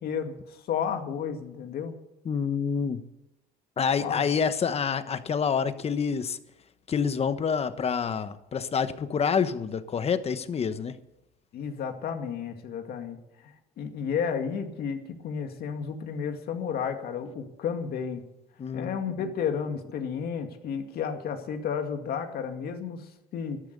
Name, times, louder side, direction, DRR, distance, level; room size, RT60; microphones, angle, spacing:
voice 1, 0.0-2.0 4.0-4.2 11.5-13.2 13.4-18.2 18.7-23.6, left 7 dB, 65° left, 5 dB, 2.2 m, -32 dB
voice 2, 2.2-3.1 3.8-6.4 6.9-11.0 18.6-19.0, left 6 dB, 35° left, 11 dB, 1.2 m, -27 dB
13.0 x 12.0 x 6.8 m, 0.91 s
cardioid pair, 110°, 17 cm